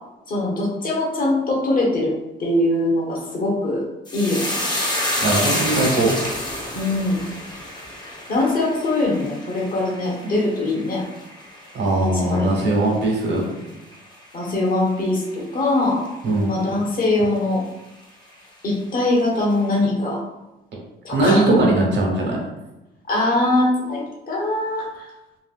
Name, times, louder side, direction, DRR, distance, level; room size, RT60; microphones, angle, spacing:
voice 1, 0.3-2.1 2.4-3.9 4.1-4.6 6.7-7.2 8.3-11.0 12.1-12.5 14.3-16.0 16.5-17.6 18.6-20.2 21.0-21.5 23.1-25.1, left 2 dB, 45° left, -3 dB, 1.2 m, -22 dB
sound 1, 4.1-12.7 13.0-13.6 13.9-14.1, left 1 dB, 20° left, 0.9 m, -28 dB
voice 2, 5.2-6.1 11.7-13.4 16.2-16.5 21.1-22.4, right 2 dB, 60° right, -2 dB, 1.2 m, -19 dB
3.3 x 2.7 x 2.5 m, 1.0 s
cardioid pair, 90°, 20 cm